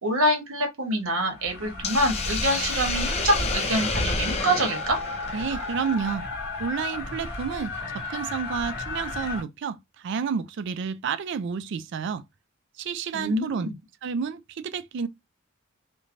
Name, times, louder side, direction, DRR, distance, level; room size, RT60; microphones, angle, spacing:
voice 1, 0.0-5.0 13.1-13.7, right 1 dB, 85° right, 1.0 m, -25 dB
sound 1, 1.3-9.4, left 2 dB, 55° left, 1.4 m, -33 dB
Hiss, 1.8-6.1, left 4 dB, 30° left, 0.5 m, -31 dB
voice 2, 5.3-6.3 6.6-12.2 12.8-13.7 14.0-15.1, right 6 dB, 60° right, 0.3 m, -30 dB
3.1 x 2.2 x 2.5 m
head